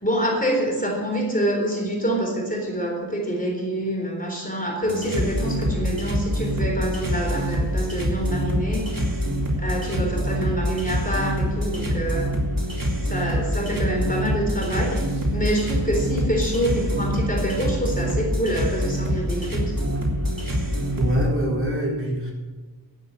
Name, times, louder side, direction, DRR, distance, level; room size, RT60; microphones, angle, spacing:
voice 1, 0.0-8.9 9.6-12.3 13.0-19.7, right 1 dB, 20° left, 0 dB, 3.9 m, -26 dB
sound 1, 4.8-21.2, equal, 50° right, 3.5 m, -25 dB
voice 2, 21.0-22.3, right 1 dB, 30° right, -3 dB, 4.6 m, -24 dB
11.5 x 9.3 x 7.9 m, 1.3 s
cardioid pair, 65°, 41 cm